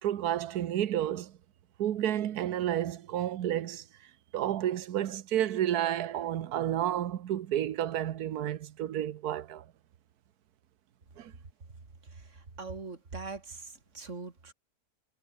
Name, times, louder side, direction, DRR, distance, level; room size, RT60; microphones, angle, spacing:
voice 1, 0.0-1.3 1.8-3.8 4.3-9.6 11.2-11.3, right 11 dB, 70° right, 1.4 m, -31 dB
voice 2, 12.1-14.5, right 4 dB, 45° right, 3.1 m, -42 dB
omnidirectional pair, 1.7 m